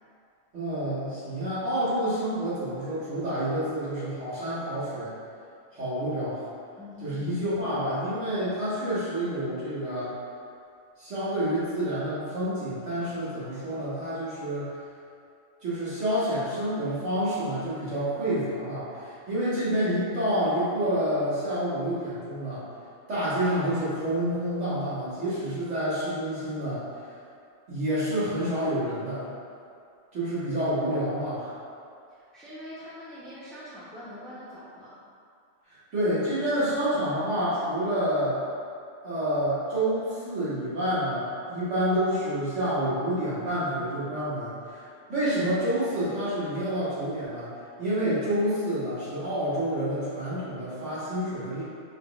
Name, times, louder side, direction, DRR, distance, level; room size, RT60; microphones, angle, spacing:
voice 1, 0.5-5.1 5.7-6.4 7.0-10.2 11.0-14.7 15.6-22.7 23.1-26.8 27.7-29.3 30.1-31.6 35.7-38.4 39.0-47.5 47.8-51.6, right 1 dB, 70° right, -12 dB, 1.9 m, -28 dB
voice 2, 6.8-7.3 32.1-35.0, left 1 dB, ahead, -10 dB, 0.7 m, -43 dB
4.6 x 3.6 x 2.4 m, 2.4 s
omnidirectional pair, 1.3 m